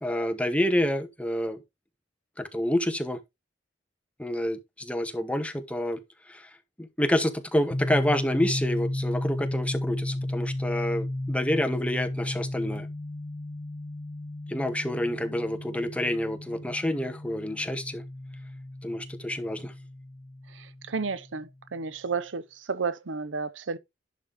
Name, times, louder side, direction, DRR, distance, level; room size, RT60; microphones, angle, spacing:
voice 1, 0.0-1.6 2.4-3.2 4.2-6.0 6.3-6.5 6.8-12.9 14.5-18.0 18.8-19.7, left 1 dB, 5° left, 1.0 m, -28 dB
sound 1, 7.7-21.3, left 1 dB, 25° left, 0.7 m, -34 dB
voice 2, 20.5-23.8, right 4 dB, 85° right, 0.7 m, -32 dB
11.0 x 5.2 x 3.5 m
head